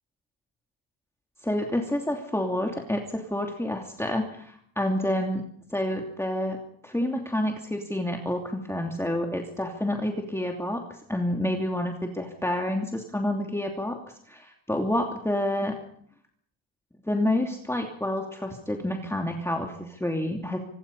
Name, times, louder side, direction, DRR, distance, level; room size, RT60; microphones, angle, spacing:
voice 1, 1.4-5.4 5.7-6.6 6.8-14.0 14.3-15.7 17.1-20.6, left 1 dB, 5° left, 2 dB, 2.8 m, -28 dB
26.0 x 20.5 x 5.6 m, 0.66 s
cardioid pair, 110°, 50 cm